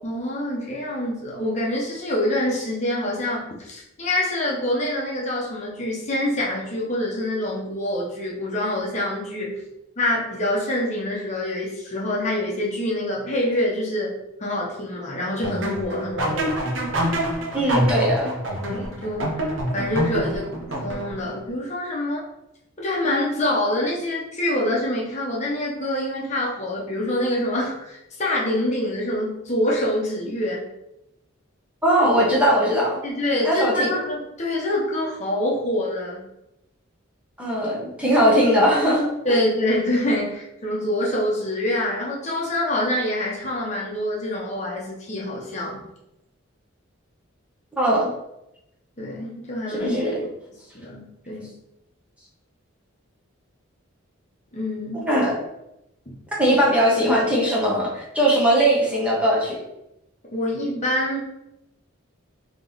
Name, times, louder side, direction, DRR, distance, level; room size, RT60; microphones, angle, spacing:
voice 1, 0.0-9.6 10.0-14.1 14.4-16.5 18.6-22.2 22.8-30.6 33.0-36.2 39.2-45.8 49.0-49.9 50.7-51.6 54.5-55.1 56.1-56.2 60.3-61.2, left 1 dB, 35° left, -4 dB, 0.9 m, -26 dB
sound 1, 15.4-21.3, right 1 dB, 65° right, 0.8 m, -26 dB
voice 2, 17.5-18.4 31.8-33.0 33.4-33.9 37.4-39.4 47.7-48.1 49.7-50.2 55.1-55.4 56.4-59.6, equal, 5° right, -5 dB, 0.9 m, -20 dB
3.6 x 2.9 x 3.9 m, 0.88 s
head